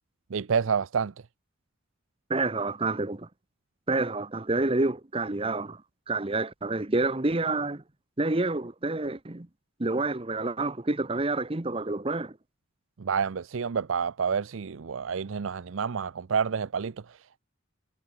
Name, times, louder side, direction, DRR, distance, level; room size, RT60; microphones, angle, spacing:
voice 1, 0.3-1.1 13.0-17.4, right 6 dB, 75° right, 0.5 m, -29 dB
voice 2, 2.3-3.3 3.9-5.8 6.1-7.8 8.2-9.5 9.8-12.4, right 2 dB, 25° right, 0.9 m, -28 dB
head